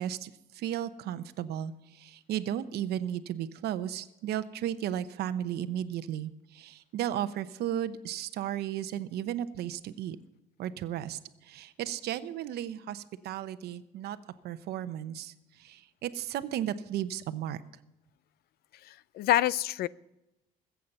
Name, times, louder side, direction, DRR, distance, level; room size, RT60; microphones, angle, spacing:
voice 1, 0.0-10.2 10.6-14.2 14.4-17.6, right 11 dB, 75° right, 12 dB, 0.9 m, -35 dB
voice 2, 18.9-19.9, left 13 dB, 65° left, 20 dB, 0.5 m, -27 dB
20.5 x 8.4 x 5.5 m, 0.93 s
cardioid pair, 110°, 17 cm